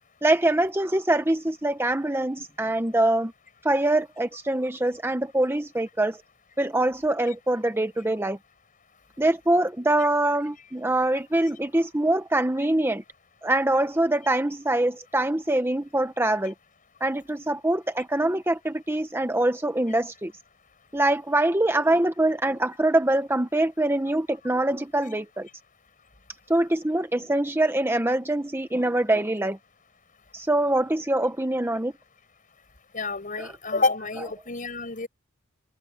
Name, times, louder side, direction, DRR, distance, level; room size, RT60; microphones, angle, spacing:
voice 1, 0.2-3.3 3.6-6.2 6.6-8.4 9.2-13.0 13.4-16.5 17.0-20.3 20.9-25.5 26.5-29.6 30.3-31.9 33.4-33.5, right 1 dB, 10° right, 1.0 m, -24 dB
voice 2, 32.9-35.1, left 3 dB, 45° left, 5.8 m, -28 dB
head